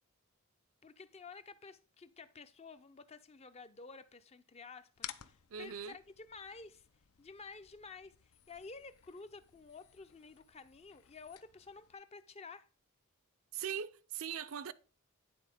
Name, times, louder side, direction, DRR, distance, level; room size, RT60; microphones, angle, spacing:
voice 1, 0.8-6.9 7.2-12.7, left 4 dB, 30° left, 0.5 m, -52 dB
sound 1, 5.0-12.0, left 11 dB, 75° left, 0.6 m, -55 dB
voice 2, 5.5-6.0 13.5-14.7, right 8 dB, 65° right, 0.5 m, -40 dB
9.6 x 4.1 x 5.1 m
head